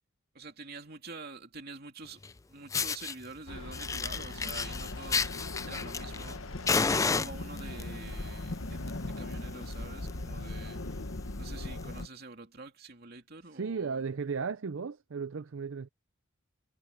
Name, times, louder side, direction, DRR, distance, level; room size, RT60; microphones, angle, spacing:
voice 1, 0.3-5.3 5.6-6.4 6.7-10.8 11.4-14.0, right 3 dB, 50° right, 3.0 m, -47 dB
Fire, 2.2-2.3 2.7-3.1 3.7-6.3 6.7-7.8 8.6-8.9 9.2-9.3 9.7-9.8 10.0-10.3 10.8-10.9 11.9-12.0, left 5 dB, 15° left, 0.3 m, -31 dB
sound 1, 3.5-12.1, left 2 dB, 80° left, 1.4 m, -39 dB
voice 2, 13.5-15.9, right 5 dB, 70° right, 0.5 m, -35 dB
head